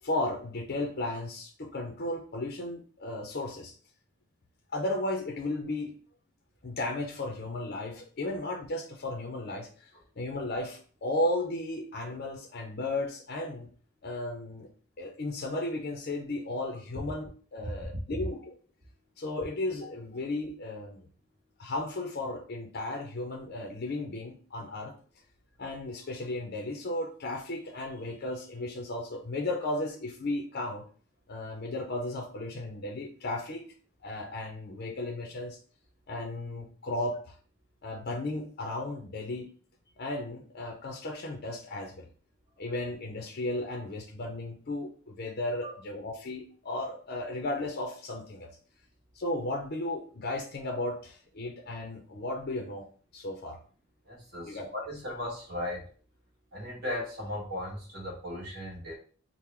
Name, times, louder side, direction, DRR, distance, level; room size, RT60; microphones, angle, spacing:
voice 1, 0.0-3.7 4.7-5.9 6.6-9.9 10.2-13.7 14.0-14.7 15.0-18.5 19.2-21.1 21.6-24.9 25.6-30.8 31.3-33.6 34.0-35.6 36.1-37.3 37.8-39.5 40.0-42.1 42.6-48.5 49.1-52.9 53.1-53.6 54.5-54.7, left 2 dB, 45° left, 1 dB, 0.5 m, -35 dB
voice 2, 54.1-55.8 56.5-59.0, left 1 dB, 50° right, -4 dB, 1.4 m, -37 dB
3.6 x 2.1 x 4.4 m, 0.43 s
head